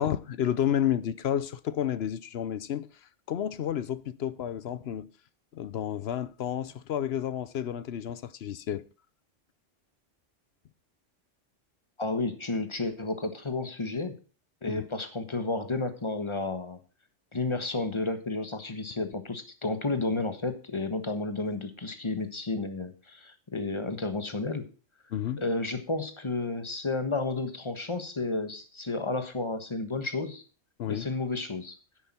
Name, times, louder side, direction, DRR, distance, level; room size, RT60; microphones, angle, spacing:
voice 1, 0.0-5.1 5.5-8.8 14.7-14.9 25.1-25.4 30.8-31.1, left 10 dB, 65° left, 0.9 m, -31 dB
voice 2, 12.0-14.2 14.6-16.8 17.3-24.7 25.4-30.4 30.9-31.7, left 3 dB, 25° left, 1.3 m, -32 dB
10.5 x 8.9 x 4.3 m
omnidirectional pair, 1.2 m